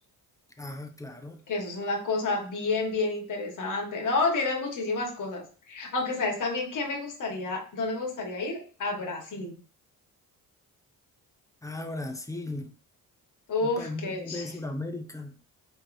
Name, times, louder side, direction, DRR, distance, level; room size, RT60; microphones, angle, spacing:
voice 1, 0.6-1.4 11.6-12.7 13.6-15.4, left 2 dB, 10° left, 0.5 m, -36 dB
voice 2, 1.5-9.6 13.5-14.5, left 3 dB, 55° left, 1.4 m, -30 dB
4.6 x 3.2 x 2.6 m
cardioid pair, 120°, 36 cm